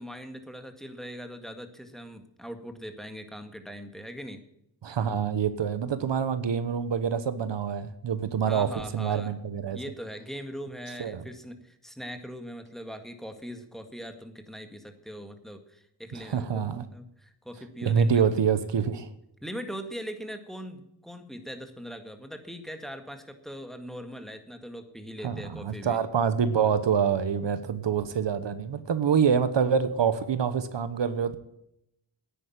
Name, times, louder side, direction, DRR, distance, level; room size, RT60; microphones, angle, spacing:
voice 1, 0.0-4.4 8.4-9.3 9.7-16.7 16.9-18.3 19.4-26.0, equal, ahead, 7 dB, 1.8 m, -41 dB
voice 2, 4.8-9.8 11.0-11.2 16.1-16.9 17.8-19.1 25.2-31.4, right 7 dB, 65° right, 12 dB, 1.1 m, -26 dB
10.5 x 9.2 x 9.3 m, 0.79 s
cardioid pair, 75°, 46 cm